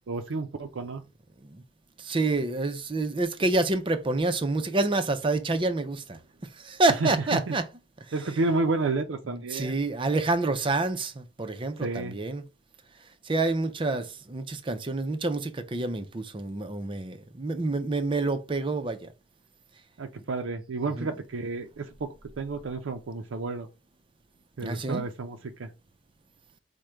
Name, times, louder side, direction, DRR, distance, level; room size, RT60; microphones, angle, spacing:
voice 1, 0.1-1.0 7.0-7.6 8.1-9.8 11.8-12.2 20.0-23.7 24.6-25.7, right 3 dB, 75° right, 0.5 m, -31 dB
voice 2, 2.0-7.6 9.3-12.4 13.2-19.1 21.0-21.1 24.6-25.1, right 2 dB, 25° right, 0.5 m, -28 dB
4.9 x 2.2 x 4.3 m
head